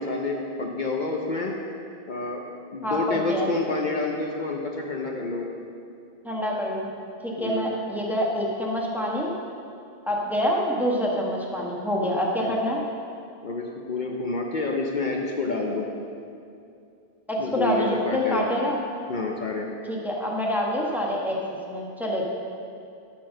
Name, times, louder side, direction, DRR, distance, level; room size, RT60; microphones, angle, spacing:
voice 1, 0.0-1.5 2.1-2.4 2.7-5.5 7.4-7.7 12.4-12.6 13.4-15.9 17.4-18.4 19.1-19.7, left 3 dB, 55° left, 0 dB, 0.8 m, -28 dB
voice 2, 2.8-3.5 6.2-6.9 7.2-9.3 10.1-12.8 17.3-18.8 19.9-21.4 21.7-22.2, equal, ahead, -3 dB, 1.1 m, -26 dB
12.0 x 4.6 x 6.2 m, 2.5 s
omnidirectional pair, 1.0 m